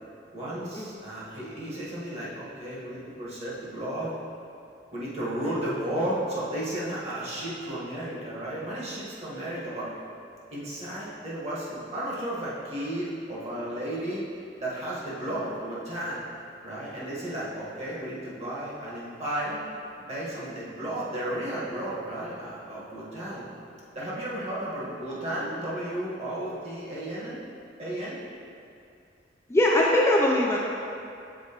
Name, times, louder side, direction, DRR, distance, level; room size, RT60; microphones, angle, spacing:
voice 1, 0.3-4.1 4.9-9.9 10.5-14.2 14.6-16.3 16.6-19.6 20.0-23.5 23.9-27.4 27.8-28.2, right 1 dB, 35° right, -7 dB, 1.4 m, -33 dB
voice 2, 29.5-30.6, left 1 dB, 15° left, -3 dB, 0.4 m, -21 dB
7.3 x 4.4 x 2.9 m, 2.6 s
head